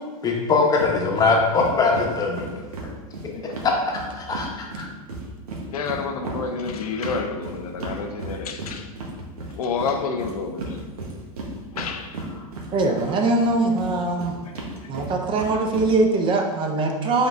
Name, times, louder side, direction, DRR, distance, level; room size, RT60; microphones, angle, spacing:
voice 1, 0.2-2.4 3.6-4.9, left 4 dB, 20° left, 0.8 m, -21 dB
sound 1, 0.8-0.9 1.2-1.3 1.6-4.5 4.7-13.1 13.4-15.9, right 2 dB, 85° right, 1.0 m, -34 dB
voice 2, 5.7-8.9 9.6-10.8 11.7-12.5 14.5-14.6, left 5 dB, 80° left, 0.5 m, -29 dB
voice 3, 12.7-14.4 14.9-17.3, right 2 dB, 25° right, 0.5 m, -22 dB
5.1 x 3.8 x 2.5 m
hypercardioid pair, 120°, 19 cm